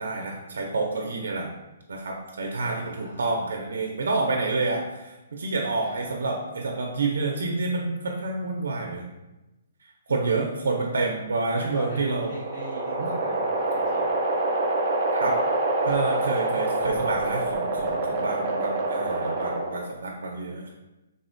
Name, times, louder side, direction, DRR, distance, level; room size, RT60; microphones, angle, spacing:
voice 1, 0.0-1.5 1.9-9.1 10.1-12.3 13.0-13.1 15.1-15.4 15.8-20.7, right 3 dB, 85° right, 1 dB, 0.4 m, -28 dB
voice 2, 2.7-3.3 5.8-6.0 10.1-10.9 11.5-14.1, equal, 30° left, -9 dB, 0.7 m, -42 dB
sound 1, 11.7-20.0, right 2 dB, 25° right, 0.4 m, -26 dB
3.5 x 2.1 x 2.5 m, 1.0 s
hypercardioid pair, 170°, 0 cm